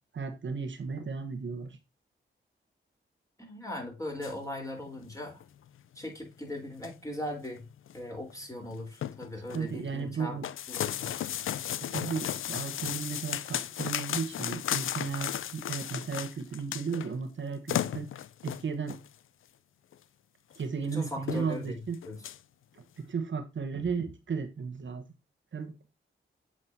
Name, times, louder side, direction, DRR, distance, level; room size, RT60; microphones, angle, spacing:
voice 1, 0.1-1.8 9.5-10.4 11.8-18.1 18.4-19.0 20.6-22.0 23.0-25.0 25.5-25.9, right 5 dB, 65° right, 1.1 m, -35 dB
voice 2, 3.4-5.4 6.0-7.6 7.9-11.1 20.8-21.7 22.0-22.2, left 1 dB, 15° left, 3.6 m, -39 dB
sound 1, 4.2-4.3 4.9-5.0 5.4-5.5 6.0-6.1 6.6-7.1 7.4-7.6 7.9-8.0 8.3-8.4 8.7-9.7 10.4-17.1 17.4-17.5 17.7-19.1 19.9-20.0 20.5-20.6 20.9-21.0 21.3-21.7 21.9-22.4, left 11 dB, 80° left, 0.4 m, -34 dB
7.9 x 4.8 x 2.6 m
cardioid pair, 50°, 21 cm